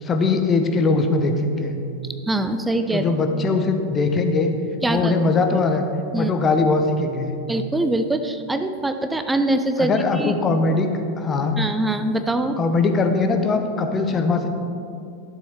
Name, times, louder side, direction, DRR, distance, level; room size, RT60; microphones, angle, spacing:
voice 1, 0.0-1.8 2.9-4.5 4.9-5.8 6.1-7.3 9.8-10.9 11.2-11.6 12.6-14.5, left 3 dB, 20° left, 5 dB, 0.9 m, -21 dB
voice 2, 2.3-3.1 4.8-5.2 6.1-6.3 7.5-10.4 11.6-12.6, right 2 dB, 5° right, 8 dB, 0.5 m, -23 dB
11.5 x 7.1 x 4.6 m, 2.6 s
figure-of-eight pair, 90°, 0 cm